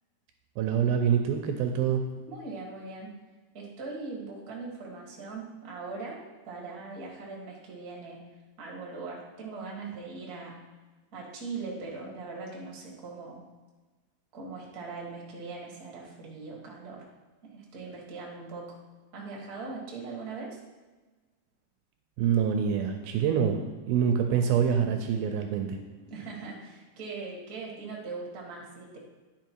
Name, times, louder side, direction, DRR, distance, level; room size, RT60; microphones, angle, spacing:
voice 1, 0.6-2.0 22.2-23.6 23.9-25.8, right 8 dB, 80° right, 5 dB, 2.4 m, -25 dB
voice 2, 2.3-3.1 3.5-10.7 11.1-13.5 14.3-17.1 17.4-18.8 19.1-20.6 26.1-29.0, right 4 dB, 40° right, -2 dB, 1.4 m, -40 dB
10.0 x 5.1 x 4.6 m, 1.3 s
omnidirectional pair, 4.5 m